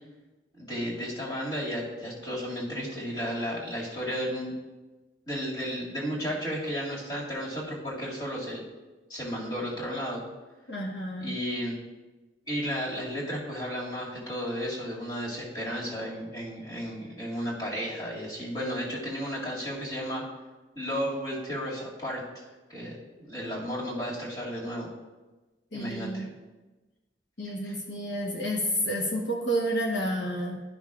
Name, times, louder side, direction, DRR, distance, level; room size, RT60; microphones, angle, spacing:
voice 1, 0.5-4.5 5.3-8.6 9.1-10.3 11.2-11.8 12.5-20.2 20.8-22.2 22.7-24.9 25.7-26.3 27.6-27.7, equal, 25° left, -7 dB, 2.2 m, -33 dB
voice 2, 10.7-11.3 25.7-26.3 27.4-30.6, equal, 75° left, -1 dB, 1.1 m, -30 dB
12.5 x 5.7 x 2.4 m, 1.2 s
head